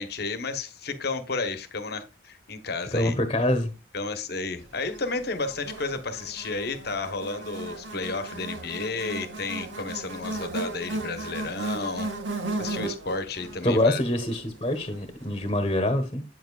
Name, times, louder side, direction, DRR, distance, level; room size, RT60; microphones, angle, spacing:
voice 1, 0.0-3.1 3.9-12.1 12.6-14.0, left 3 dB, 55° left, 1.1 m, -32 dB
voice 2, 2.9-3.7 13.6-16.2, left 1 dB, 30° left, 1.2 m, -25 dB
Buzz, 4.9-15.3, right 2 dB, 85° right, 2.2 m, -36 dB
8.9 x 7.3 x 2.4 m
head